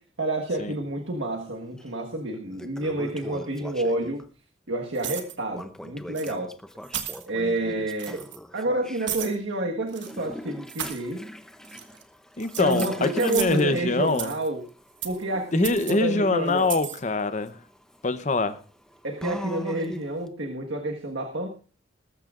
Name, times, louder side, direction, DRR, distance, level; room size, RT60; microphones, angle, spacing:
voice 1, 0.0-4.3 4.7-6.5 7.2-8.3 8.5-11.3 12.6-14.7 15.0-16.7 19.0-21.5, right 1 dB, 85° right, 2 dB, 1.5 m, -29 dB
Toilet flush, 1.8-1.9 2.3-4.3 5.5-9.1 9.9-20.3, equal, 5° left, 0.7 m, -42 dB
sound 1, 4.9-5.4 6.1-6.3 6.8-7.3 7.9-8.4 9.1-9.4 9.9-10.1 10.7-11.0 11.6-12.0 12.4-13.6 14.1-14.5 15.0-15.2 15.6-15.9 16.6-17.0, right 10 dB, 65° right, 1.4 m, -34 dB
voice 2, 12.4-14.3 15.5-17.6 18.0-18.6, left 2 dB, 40° left, 11 dB, 0.8 m, -24 dB
20.0 x 13.5 x 2.5 m, 0.38 s
head